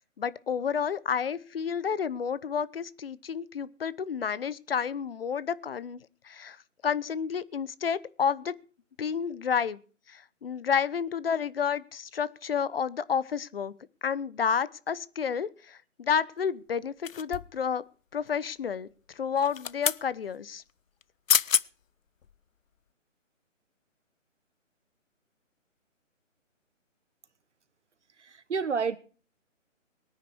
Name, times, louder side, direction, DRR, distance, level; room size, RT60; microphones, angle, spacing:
voice 1, 0.0-6.0 6.2-6.6 6.8-8.5 9.0-9.8 10.1-13.7 14.0-17.8 18.1-18.9 19.1-20.6, left 7 dB, 45° left, 1.0 m, -30 dB
sound 1, 17.0-17.6 19.3-20.0 21.0-21.1 21.3-21.7 22.2-22.3, left 8 dB, 80° left, 0.8 m, -27 dB
voice 2, 28.2-29.0, right 5 dB, 65° right, 1.5 m, -30 dB
23.0 x 10.0 x 4.6 m
hypercardioid pair, 155°, 39 cm